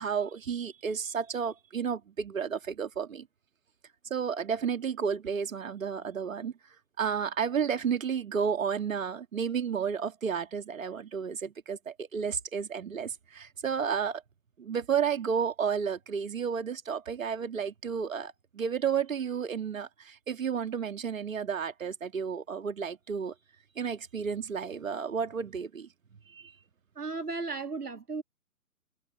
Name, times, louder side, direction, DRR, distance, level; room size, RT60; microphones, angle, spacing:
voice 1, 0.0-3.3 4.1-6.5 7.0-14.2 14.6-23.3 23.8-25.9 26.3-26.5, right 7 dB, 60° right, 2.3 m, -32 dB
voice 2, 27.0-28.2, right 3 dB, 80° right, 1.8 m, -35 dB
figure-of-eight pair, 135°, 45 cm